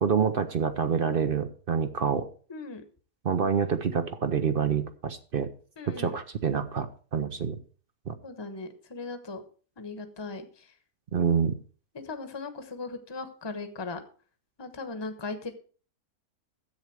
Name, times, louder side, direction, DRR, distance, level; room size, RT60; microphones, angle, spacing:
voice 1, 0.0-2.2 3.2-5.5 5.9-6.9 7.1-7.6 8.1-8.2 11.1-11.5, right 6 dB, 45° right, 9 dB, 0.8 m, -27 dB
voice 2, 2.5-2.8 5.8-6.1 8.2-9.4 9.8-10.7 12.0-14.0 14.6-15.5, left 3 dB, 20° left, 7 dB, 1.1 m, -38 dB
11.0 x 8.2 x 4.7 m, 0.40 s
omnidirectional pair, 1.6 m